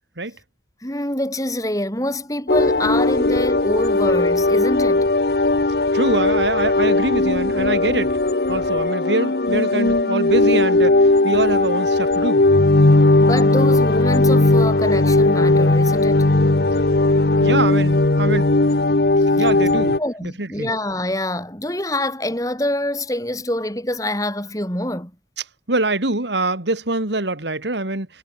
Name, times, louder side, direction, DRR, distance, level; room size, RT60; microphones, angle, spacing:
voice 1, 0.8-5.1 13.2-16.3 19.4-19.5 19.8-25.1, left 1 dB, 20° left, 7.1 m, -25 dB
sound 1, 2.5-20.0, left 2 dB, 60° left, 1.0 m, -17 dB
voice 2, 5.9-8.2 8.5-12.5 17.4-18.5 19.4-20.7 25.7-28.1, right 2 dB, 85° right, 3.2 m, -24 dB
head